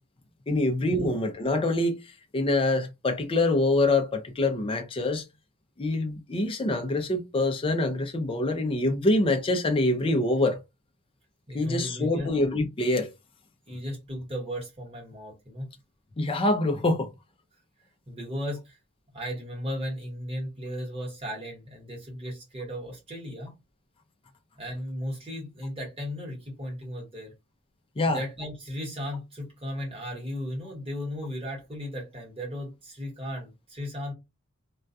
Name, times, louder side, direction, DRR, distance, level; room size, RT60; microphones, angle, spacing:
voice 1, 0.5-5.2 5.8-10.6 11.5-13.1 16.2-17.1 28.0-28.2, left 2 dB, 25° left, 0.4 m, -25 dB
voice 2, 11.5-12.3 13.7-15.8 18.1-18.8 19.1-23.5 24.6-27.3 28.1-34.1, equal, 25° right, 1.0 m, -35 dB
2.2 x 2.2 x 2.6 m
head